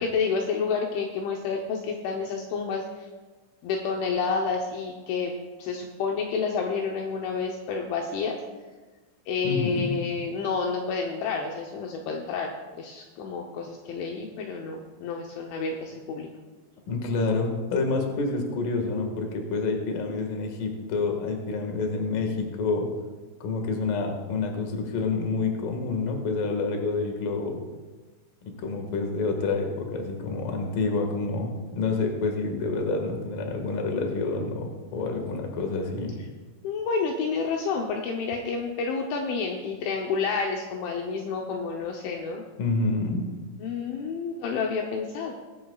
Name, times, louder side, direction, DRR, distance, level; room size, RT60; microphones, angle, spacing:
voice 1, 0.0-3.1 3.6-5.3 5.6-8.4 9.3-16.3 36.6-42.4 43.6-45.3, left 5 dB, 75° left, 1 dB, 3.1 m, -29 dB
voice 2, 9.4-10.0 16.9-22.9 23.4-27.6 28.4-36.2 42.6-43.3, left 3 dB, 55° left, 2 dB, 2.7 m, -28 dB
23.0 x 10.5 x 2.4 m, 1.3 s
omnidirectional pair, 5.9 m